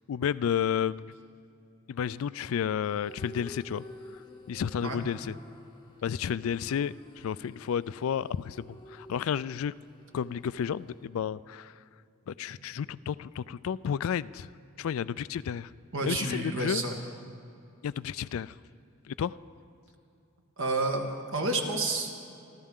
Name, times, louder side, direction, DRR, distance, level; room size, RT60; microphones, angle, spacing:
voice 1, 0.1-1.1 1.9-3.8 4.5-5.4 6.0-9.7 10.1-11.7 12.3-14.5 14.8-15.7 16.1-16.8 17.8-18.5 19.1-19.4, left 8 dB, 70° left, 18 dB, 0.3 m, -31 dB
sound 1, 2.8-11.0, left 1 dB, 20° left, 1.0 m, -51 dB
voice 2, 15.9-17.0 20.6-21.0 21.3-22.1, right 2 dB, 65° right, 2 dB, 1.8 m, -29 dB
28.0 x 13.0 x 3.7 m, 2.6 s
head